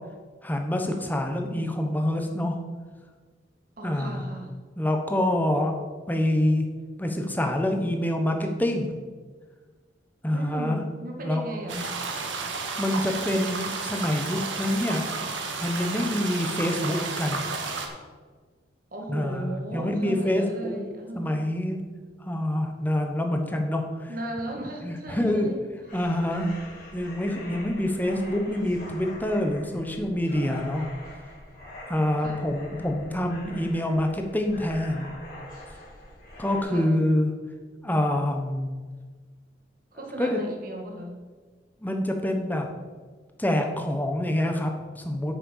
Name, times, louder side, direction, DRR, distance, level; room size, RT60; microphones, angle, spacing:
voice 1, 0.4-2.6 3.8-4.2 4.8-5.7 6.1-6.6 7.0-8.9 10.2-10.8 11.2-11.4 12.8-15.1 15.6-17.4 19.1-20.8 21.1-21.8 22.2-24.1 24.8-25.5 25.9-26.5 26.9-30.9 31.9-35.1 36.4-37.3 37.8-38.7 40.2-40.4 41.8-42.7 43.4-45.3, left 1 dB, 10° left, 4 dB, 1.0 m, -26 dB
voice 2, 3.8-4.6 10.3-12.0 18.9-21.5 24.1-25.7 32.2-32.5 36.6-37.0 39.9-41.1, right 1 dB, 50° right, 1 dB, 1.9 m, -36 dB
sound 1, 11.7-17.9, right 4 dB, 90° right, 1.6 m, -32 dB
sound 2, 25.8-36.6, left 1 dB, 50° left, 3.7 m, -44 dB
8.4 x 6.7 x 7.2 m, 1.4 s
head